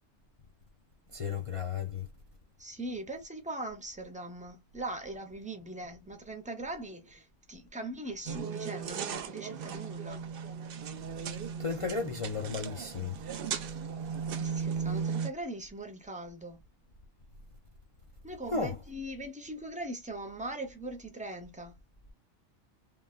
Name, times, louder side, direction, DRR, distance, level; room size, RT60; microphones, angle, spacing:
voice 1, 1.1-2.1 11.6-13.2 18.5-18.7, left 4 dB, 60° left, 0.3 m, -34 dB
voice 2, 2.6-10.3 14.4-16.6 18.2-21.8, right 1 dB, 10° right, 0.5 m, -40 dB
sound 1, 8.3-15.3, right 6 dB, 60° right, 0.6 m, -36 dB
3.3 x 2.2 x 2.3 m
omnidirectional pair, 1.2 m